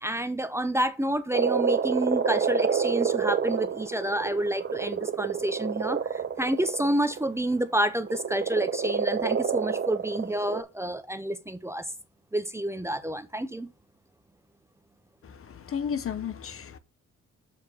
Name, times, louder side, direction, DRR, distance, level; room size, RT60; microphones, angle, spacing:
voice 1, 0.0-11.9 12.3-13.7, right 1 dB, 10° right, 0.7 m, -29 dB
Frog, 1.3-7.2 8.1-10.6, right 6 dB, 35° right, 0.9 m, -28 dB
voice 2, 15.2-16.8, left 7 dB, 45° left, 0.9 m, -33 dB
7.5 x 4.5 x 6.2 m
cardioid pair, 90°, 30 cm